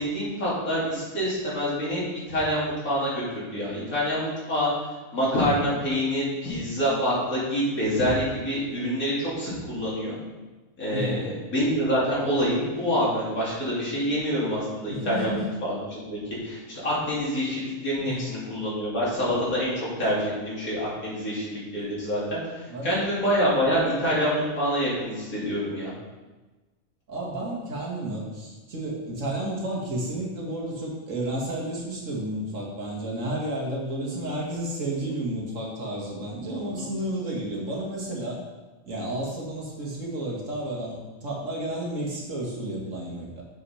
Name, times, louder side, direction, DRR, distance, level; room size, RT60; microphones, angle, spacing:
voice 1, 0.0-4.7 5.1-10.2 10.8-25.9 34.0-34.3 35.0-35.1 36.5-36.9, equal, 80° left, -7 dB, 3.3 m, -27 dB
voice 2, 10.9-11.3 14.9-15.5 18.0-18.3 22.7-23.1 27.1-38.4 38.9-43.4, right 1 dB, 65° right, -3 dB, 2.0 m, -32 dB
7.0 x 5.7 x 5.6 m, 1.2 s
omnidirectional pair, 1.5 m